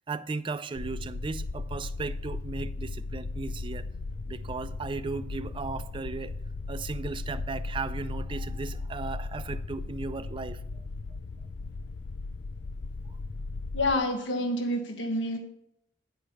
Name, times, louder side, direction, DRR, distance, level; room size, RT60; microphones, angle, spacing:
voice 1, 0.1-3.9 4.3-6.4 6.7-10.6, right 4 dB, 25° right, 0.4 m, -36 dB
sound 1, 0.7-14.0, left 3 dB, 70° left, 0.5 m, -37 dB
voice 2, 13.7-15.4, left 1 dB, 85° left, 1.3 m, -28 dB
10.0 x 5.1 x 6.4 m
head